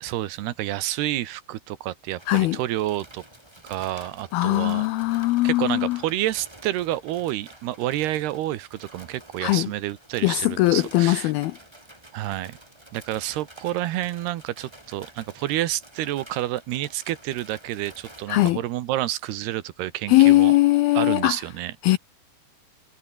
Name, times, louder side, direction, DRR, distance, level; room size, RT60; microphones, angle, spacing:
voice 1, 0.0-3.2 3.6-4.9 5.2-11.3 12.1-12.6 12.9-20.5 20.9-21.7, right 14 dB, 75° right, 3.2 m, -29 dB
sound 1, 2.2-18.5, right 1 dB, 5° right, 2.7 m, -49 dB
voice 2, 2.3-2.6 4.3-6.0 9.4-9.7 10.2-11.6 18.3-18.6 20.1-21.4 21.8-22.0, left 18 dB, 75° left, 2.4 m, -20 dB
omnidirectional pair, 4.8 m